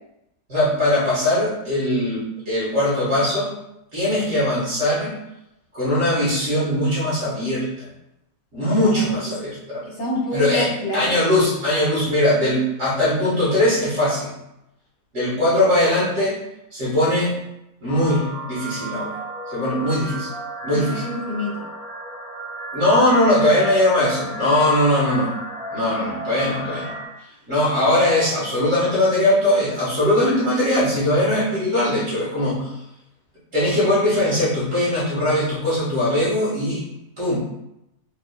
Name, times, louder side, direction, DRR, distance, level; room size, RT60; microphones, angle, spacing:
voice 1, 0.5-3.5 3.9-5.1 5.7-7.6 8.5-9.8 10.3-10.7 10.9-14.3 15.1-16.4 16.7-17.3 17.8-19.2 19.5-20.3 20.6-21.0 22.7-25.3 25.7-26.9 27.5-32.7 33.5-36.8 37.2-37.4, left 1 dB, 50° right, -8 dB, 2.0 m, -20 dB
voice 2, 8.7-9.1 9.8-11.1 20.7-21.7, left 2 dB, 65° left, -5 dB, 2.1 m, -27 dB
sound 1, 17.9-27.0, right 1 dB, 5° left, 0.3 m, -33 dB
4.8 x 3.8 x 2.4 m, 0.86 s
omnidirectional pair, 1.7 m